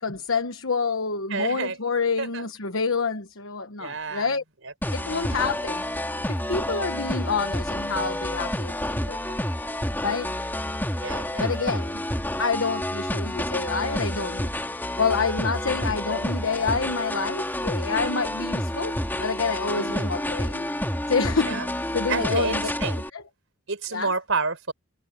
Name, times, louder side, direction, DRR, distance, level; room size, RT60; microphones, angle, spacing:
voice 1, 0.0-4.4 4.9-5.8 6.3-9.4 10.0-10.3 11.4-12.0 12.4-14.5 15.0-20.7 21.1-21.6 21.9-22.7 23.1-23.2 23.9-24.1, left 5 dB, 65° left, 1.2 m, -28 dB
voice 2, 1.3-1.8 2.2-2.5 3.8-4.3 4.6-5.4 11.0-11.7 19.7-20.2 21.4-21.7 22.1-23.0 23.7-24.7, right 4 dB, 65° right, 4.5 m, -30 dB
sound 1, 4.8-23.1, left 1 dB, 10° left, 3.2 m, -29 dB
head